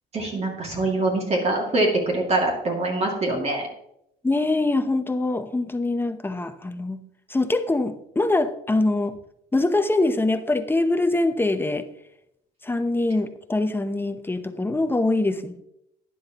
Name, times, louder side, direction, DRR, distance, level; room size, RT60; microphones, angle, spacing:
voice 1, 0.1-3.7, right 2 dB, 40° right, 0 dB, 2.3 m, -24 dB
voice 2, 4.2-7.0 7.3-9.2 9.5-11.8 12.6-15.6, left 2 dB, 15° left, 9 dB, 0.8 m, -23 dB
11.5 x 10.0 x 3.0 m, 0.77 s
cardioid pair, 110°, 17 cm